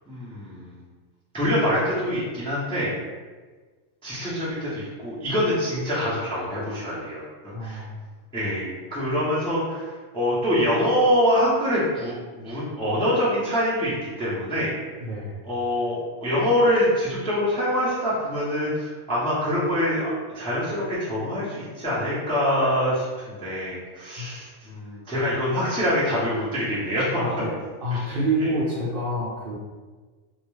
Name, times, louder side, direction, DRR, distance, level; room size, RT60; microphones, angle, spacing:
voice 1, 0.1-0.8 1.3-2.9 4.0-7.8 8.3-14.7 15.4-27.2 27.9-28.5, equal, 5° left, -9 dB, 0.4 m, -25 dB
voice 2, 7.5-8.0 15.0-15.4 24.2-24.3 27.2-27.5 27.8-29.5, right 1 dB, 55° right, -7 dB, 0.7 m, -27 dB
2.3 x 2.2 x 3.0 m, 1.4 s
omnidirectional pair, 1.3 m